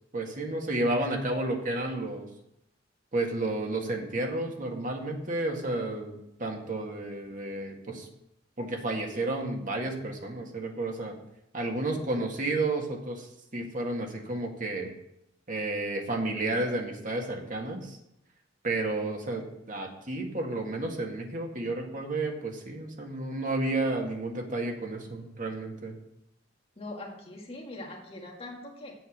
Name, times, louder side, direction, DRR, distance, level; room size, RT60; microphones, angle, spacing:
voice 1, 0.1-2.3 3.1-8.1 8.6-11.2 11.5-14.9 15.5-18.0 18.6-26.0, right 2 dB, 45° right, 2 dB, 1.9 m, -31 dB
voice 2, 26.8-29.0, left 2 dB, 30° left, 0 dB, 1.8 m, -42 dB
8.0 x 8.0 x 6.5 m, 0.81 s
head